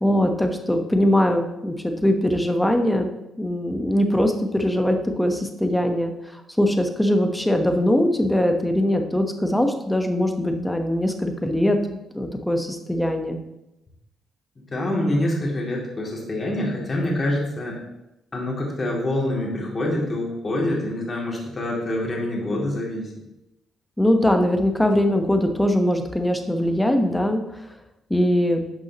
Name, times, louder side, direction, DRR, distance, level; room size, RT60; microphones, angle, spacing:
voice 1, 0.0-3.1 3.4-6.1 6.6-11.8 12.1-13.4 24.0-27.4 28.1-28.6, left 1 dB, 5° left, 5 dB, 1.0 m, -21 dB
voice 2, 14.6-17.8 18.3-23.1, left 1 dB, 30° left, -3 dB, 2.6 m, -26 dB
11.0 x 6.0 x 3.0 m, 0.91 s
cardioid pair, 90°, 0 cm